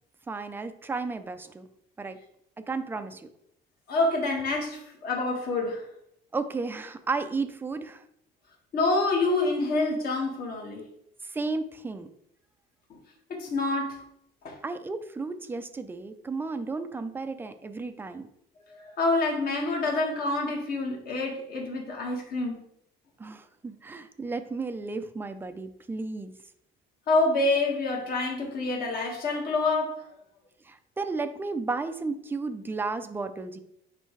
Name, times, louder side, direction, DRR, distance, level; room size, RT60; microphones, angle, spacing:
voice 1, 0.3-1.7 2.0-2.2 2.7-3.3 6.3-8.0 11.2-12.1 14.6-18.3 23.2-26.3 30.6-33.6, right 3 dB, 10° right, 0.4 m, -33 dB
voice 2, 3.9-5.8 8.7-10.9 12.9-13.0 13.3-14.0 14.4-14.6 18.7-22.6 27.1-30.0, left 2 dB, 45° left, 1.8 m, -27 dB
9.9 x 3.3 x 3.2 m
cardioid pair, 145°, 20 cm